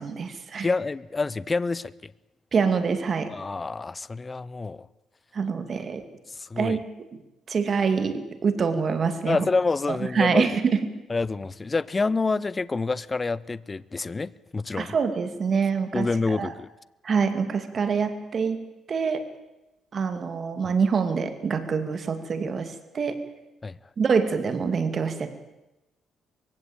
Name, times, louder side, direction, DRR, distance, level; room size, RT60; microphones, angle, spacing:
voice 1, 0.0-0.7 2.5-3.3 5.3-6.0 6.6-6.8 7.5-9.5 9.9-10.9 14.8-16.5 17.0-19.3 19.9-23.2 24.0-25.3, right 5 dB, 45° right, 2.4 m, -25 dB
voice 2, 0.6-2.1 3.3-4.9 6.3-6.8 9.3-10.5 11.1-14.9 15.9-16.7 23.6-23.8, left 3 dB, 25° left, 0.7 m, -27 dB
22.0 x 16.5 x 9.0 m
cardioid pair, 90°, 0 cm